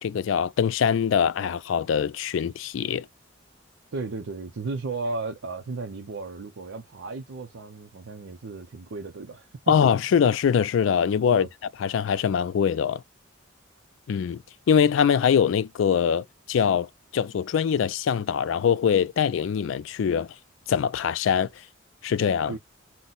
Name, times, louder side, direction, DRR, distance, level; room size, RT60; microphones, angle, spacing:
voice 1, 0.0-3.1 9.7-11.5 11.8-13.0 14.1-14.4 14.7-16.9 17.1-20.3 20.7-21.5 22.0-22.6, left 7 dB, 80° left, 0.3 m, -23 dB
voice 2, 3.9-9.7 11.3-11.5 22.5-22.6, right 3 dB, 80° right, 0.6 m, -34 dB
2.6 x 2.1 x 3.8 m
head